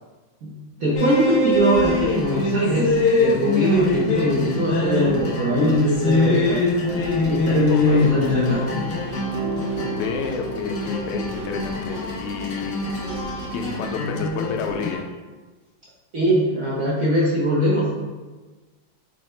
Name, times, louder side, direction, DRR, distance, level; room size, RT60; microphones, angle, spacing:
voice 1, 0.4-6.6 7.2-8.6 16.1-17.9, equal, 65° right, -6 dB, 0.8 m, -22 dB
sound 1, 0.9-14.9, left 2 dB, 65° left, 1.4 m, -23 dB
sound 2, 5.4-11.0, right 1 dB, 85° right, 1.6 m, -35 dB
voice 2, 7.7-8.2 9.6-9.7 9.9-12.9 13.5-15.1, left 5 dB, 90° left, 3 dB, 1.4 m, -30 dB
sound 3, 7.9-13.9, left 1 dB, 35° right, 0.9 m, -39 dB
5.2 x 2.1 x 4.2 m, 1.3 s
omnidirectional pair, 2.2 m